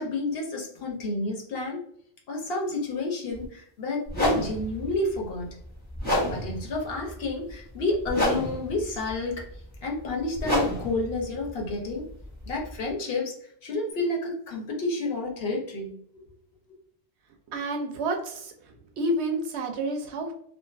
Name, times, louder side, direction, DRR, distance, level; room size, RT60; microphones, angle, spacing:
voice 1, 0.0-1.8 2.3-5.5 6.2-9.5 9.8-12.0 12.4-13.3 13.6-16.2, left 2 dB, 65° left, 0 dB, 0.9 m, -30 dB
sound 1, 3.3-3.5 4.1-12.9, left 1 dB, 10° left, 0.8 m, -31 dB
voice 2, 17.5-18.5 19.0-20.3, right 1 dB, 85° right, 4 dB, 0.9 m, -29 dB
2.5 x 2.4 x 2.3 m, 0.65 s
omnidirectional pair, 1.1 m